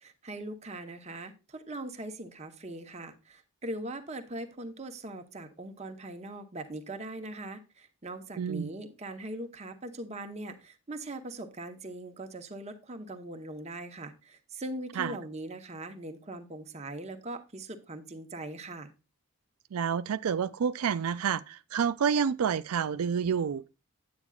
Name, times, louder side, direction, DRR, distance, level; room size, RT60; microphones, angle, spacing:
voice 1, 0.0-18.9, right 1 dB, 30° right, 0.9 m, -41 dB
voice 2, 8.4-8.7 15.0-15.2 19.7-23.7, right 7 dB, 90° right, 0.4 m, -29 dB
9.5 x 8.8 x 2.4 m
head